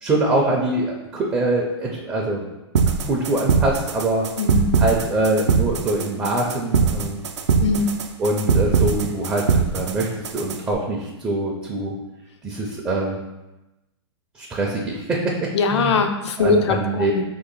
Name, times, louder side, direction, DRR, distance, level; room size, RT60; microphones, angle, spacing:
voice 1, 0.0-2.5 3.1-4.3 4.8-7.2 8.2-9.5 9.7-11.9 12.4-13.2 14.4-16.0 16.4-17.1, right 2 dB, 10° right, -2 dB, 0.4 m, -23 dB
sound 1, 2.7-10.7, right 6 dB, 85° right, 0.5 m, -22 dB
voice 2, 4.4-4.7 7.6-7.9 15.5-17.2, left 4 dB, 75° left, 7 dB, 0.5 m, -21 dB
2.9 x 2.8 x 3.9 m, 0.99 s
hypercardioid pair, 140°, 15 cm